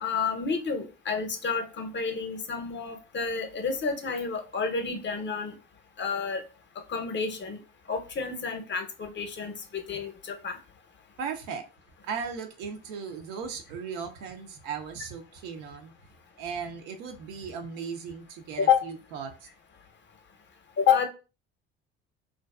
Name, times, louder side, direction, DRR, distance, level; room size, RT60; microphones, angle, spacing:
voice 1, 0.0-5.5 6.0-6.4 6.9-7.6 7.9-10.6 18.6-18.8 20.8-21.1, left 6 dB, 35° left, 5 dB, 0.6 m, -29 dB
voice 2, 11.2-11.6 12.1-15.9 16.4-19.3, right 6 dB, 80° right, 5 dB, 0.5 m, -37 dB
2.5 x 2.2 x 2.2 m, 0.32 s
hypercardioid pair, 60°, 31 cm